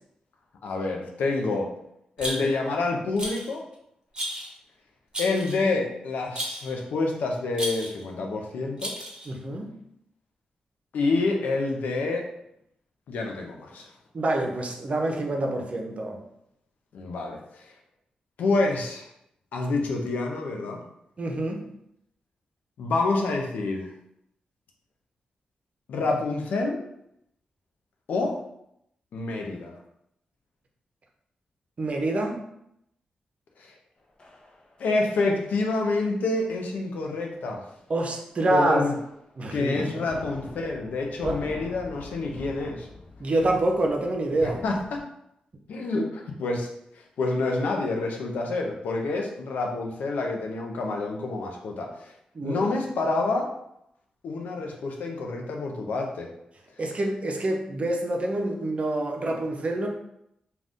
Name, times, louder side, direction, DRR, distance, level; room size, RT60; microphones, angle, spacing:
voice 1, 0.6-1.7 2.2-3.6 5.2-8.9 10.9-12.2 13.1-13.9 16.9-17.6 18.4-19.1 19.5-20.8 22.8-23.9 25.9-26.8 28.1-28.4 29.1-29.7 33.6-33.7 34.8-37.6 38.5-38.9 39.5-42.9 44.4-45.0 45.7-46.7 47.2-52.1 52.4-53.5 54.2-56.3, left 3 dB, 80° left, 1 dB, 0.5 m, -27 dB
Rattle, 2.2-2.7 3.2-3.6 4.1-4.5 5.1-5.7 6.4-6.7 7.5-8.0 8.8-9.3, equal, 30° right, 1.0 m, -33 dB
voice 2, 9.3-9.7 14.1-16.2 21.2-21.7 31.8-32.4 37.9-38.8 39.4-40.1 41.2-41.4 43.2-44.6 52.3-52.7 56.8-59.9, right 2 dB, 50° right, 2 dB, 0.6 m, -27 dB
sound 1, 34.2-35.1 35.4-35.7 35.9-36.2 36.5-36.7 37.1-37.2 37.7-38.0 38.3-38.4 38.8-39.7 40.0-45.0, left 2 dB, 40° left, 0.7 m, -44 dB
2.5 x 2.3 x 3.5 m, 0.78 s
supercardioid pair, 50°, 3 cm